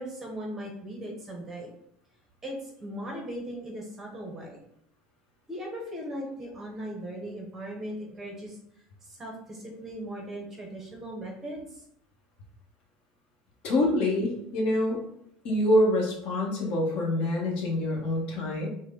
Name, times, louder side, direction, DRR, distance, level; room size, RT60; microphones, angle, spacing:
voice 1, 0.0-1.7 2.4-4.6 5.5-8.6 9.0-11.8, equal, 15° right, 0 dB, 0.8 m, -38 dB
voice 2, 13.6-15.0 15.4-18.7, left 1 dB, 45° left, -1 dB, 1.1 m, -26 dB
6.3 x 2.1 x 3.6 m, 0.73 s
cardioid pair, 175°, 2 cm